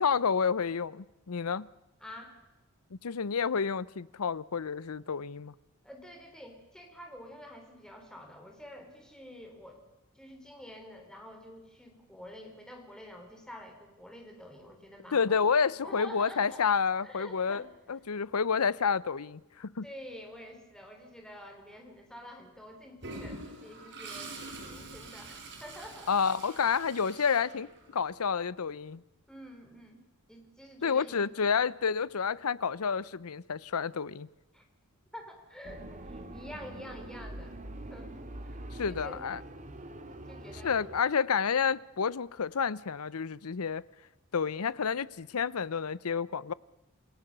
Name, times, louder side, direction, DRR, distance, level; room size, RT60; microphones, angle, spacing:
voice 1, 0.0-1.6 3.0-5.5 15.1-17.6 17.9-19.8 26.1-29.0 30.8-34.3 38.8-39.4 40.6-43.8 44.3-46.5, left 6 dB, 80° left, 0.7 m, -29 dB
voice 2, 2.0-2.4 5.8-9.8 10.1-15.4 15.8-16.7 17.0-17.7 19.8-26.1 29.3-30.0 30.3-31.3 34.5-34.6 35.1-37.6 37.9-38.1 38.4-38.6 38.9-39.2 40.3-40.9, equal, 5° left, 4.3 m, -48 dB
Toilet flush, 23.0-28.1, right 2 dB, 55° right, 5.7 m, -45 dB
sound 1, 35.6-41.0, right 1 dB, 35° right, 2.1 m, -44 dB
28.0 x 17.5 x 6.8 m
head